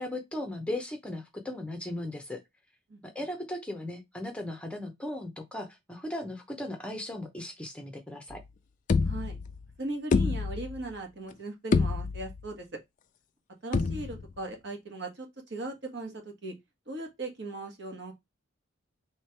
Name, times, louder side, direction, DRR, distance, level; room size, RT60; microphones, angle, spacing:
voice 1, 0.0-2.4 3.0-8.4, left 1 dB, 5° left, 0.7 m, -37 dB
sound 1, 8.3-8.4 8.9-9.7 10.1-10.9 11.3-11.4 11.7-12.5 13.7-14.4, left 4 dB, 35° left, 0.3 m, -27 dB
voice 2, 9.0-9.4 9.8-12.6 13.6-16.1 16.4-16.5 16.9-18.1, right 2 dB, 55° right, 1.3 m, -38 dB
3.2 x 3.2 x 4.4 m
head